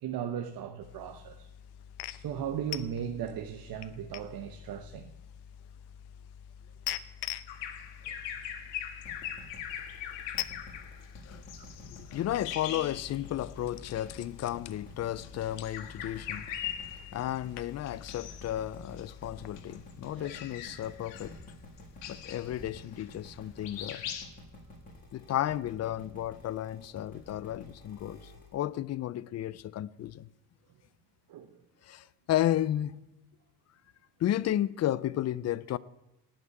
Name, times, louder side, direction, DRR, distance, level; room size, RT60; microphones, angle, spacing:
voice 1, 0.0-1.5 2.2-5.1 8.0-8.1 11.6-11.7 20.1-20.4 31.3-31.6, right 9 dB, 55° right, 1.0 m, -37 dB
sound 1, 0.8-19.6, left 12 dB, 65° left, 0.8 m, -45 dB
Bird vocalization bird call bird song, 7.5-13.5 13.8-14.1 15.1-17.4 17.9-18.5 18.8-23.4 23.6-24.3, left 10 dB, 85° left, 2.0 m, -41 dB
sound 2, 9.0-28.5, left 2 dB, 20° left, 7.0 m, -51 dB
voice 2, 11.8-16.5 17.1-21.4 22.1-24.0 25.1-30.3 31.8-33.0 34.2-35.8, left 12 dB, 40° left, 0.4 m, -33 dB
17.5 x 6.0 x 9.3 m
cardioid pair, 145°, 42 cm